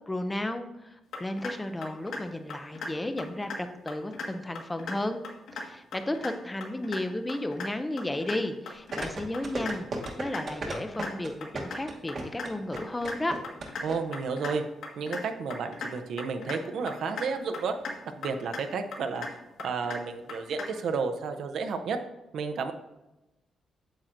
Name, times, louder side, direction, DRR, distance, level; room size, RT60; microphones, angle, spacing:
voice 1, 0.1-5.2 5.6-9.9 10.2-13.4, left 1 dB, 10° left, 8 dB, 0.4 m, -33 dB
sound 1, 1.1-1.5 1.8-2.2 2.5-2.9 3.2-3.6 3.9-4.3 4.6-5.0 5.2-5.6 5.9-6.3 6.6-7.0 7.3-7.7 8.0-8.4 8.7-9.1 9.3-9.7 10.0-10.4 10.7-11.1 11.4-11.8 12.1-12.5 12.8-13.2 13.4-13.8 14.1-14.5 14.8-15.2 15.5-15.9 16.2-16.6 16.9-17.3 17.5-17.9 18.2-18.6 18.9-19.3 19.6-20.0 20.3-20.7, left 3 dB, 85° left, 1.5 m, -36 dB
sound 2, 8.9-14.0 14.2-14.3, right 2 dB, 40° right, 1.1 m, -35 dB
voice 2, 13.8-14.6 15.0-17.7 18.1-19.3 19.6-22.0 22.3-22.7, right 5 dB, 65° right, 7 dB, 0.7 m, -31 dB
8.9 x 7.3 x 2.6 m, 0.98 s
wide cardioid pair, 180°, 0 cm